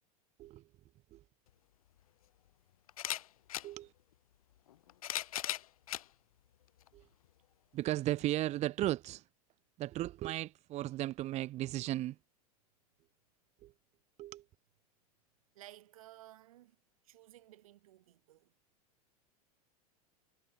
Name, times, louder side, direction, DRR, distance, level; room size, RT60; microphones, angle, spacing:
sound 1, 1.5-1.6 2.9-3.7 4.7-6.1 6.8-6.9 8.2-8.3, left 12 dB, 65° left, 1.2 m, -38 dB
voice 1, 7.7-9.3 9.8-12.2 13.6-13.7 14.2-14.4, right 15 dB, 35° right, 1.1 m, -35 dB
voice 2, 15.5-16.8 17.0-18.5, right 14 dB, 60° right, 5.0 m, -56 dB
figure-of-eight pair, 90°, 20 cm